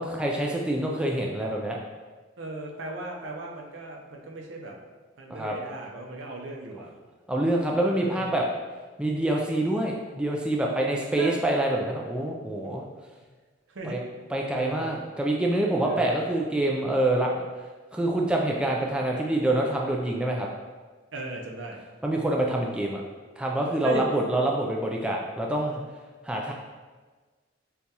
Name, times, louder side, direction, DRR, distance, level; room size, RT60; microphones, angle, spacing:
voice 1, 0.0-1.8 5.3-5.6 7.3-8.5 9.0-12.8 13.8-14.0 14.3-17.5 17.9-20.5 22.0-23.0 23.4-25.8 26.2-26.5, right 1 dB, 5° right, -1 dB, 0.3 m, -26 dB
voice 2, 2.4-4.7 5.2-6.9 7.8-8.3 11.1-11.3 13.7-14.0 14.5-14.9 15.8-16.2 21.1-21.8 23.8-24.1, right 1 dB, 70° right, 0 dB, 0.7 m, -36 dB
6.8 x 2.3 x 2.9 m, 1.4 s
head